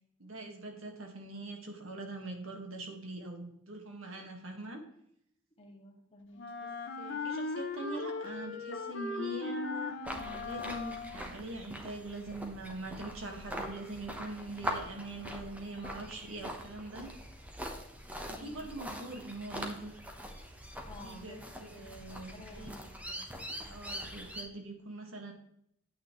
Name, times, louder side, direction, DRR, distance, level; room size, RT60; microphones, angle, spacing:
voice 1, 0.2-4.8 6.6-6.7 7.0-17.1 18.3-19.9 21.0-22.7 23.7-25.3, right 2 dB, 90° right, 3 dB, 1.9 m, -43 dB
voice 2, 5.6-6.5 18.4-18.7 20.9-21.4 21.7-23.3, left 2 dB, 30° left, 0 dB, 2.1 m, -52 dB
Wind instrument woodwind instrument, 6.4-11.4, left 3 dB, 60° left, 0.9 m, -38 dB
sound 1, 10.0-24.4, equal, 5° right, 1.2 m, -43 dB
9.2 x 8.5 x 3.2 m, 0.73 s
head